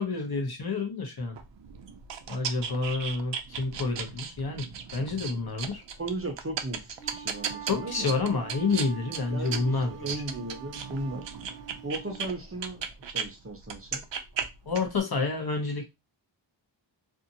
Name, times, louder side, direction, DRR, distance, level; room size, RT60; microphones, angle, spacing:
voice 1, 0.0-1.4 2.3-5.8 7.7-10.1 14.7-15.9, left 3 dB, 55° left, 0.9 m, -29 dB
sound 1, 1.4-13.3 13.6-15.0, right 7 dB, 70° right, 0.5 m, -36 dB
voice 2, 6.0-8.1 9.3-11.3 11.8-14.0, right 2 dB, 30° right, 0.7 m, -36 dB
Wind instrument woodwind instrument, 6.8-12.2, right 9 dB, 15° left, 1.3 m, -45 dB
2.6 x 2.5 x 2.6 m
wide cardioid pair, 90°, 46 cm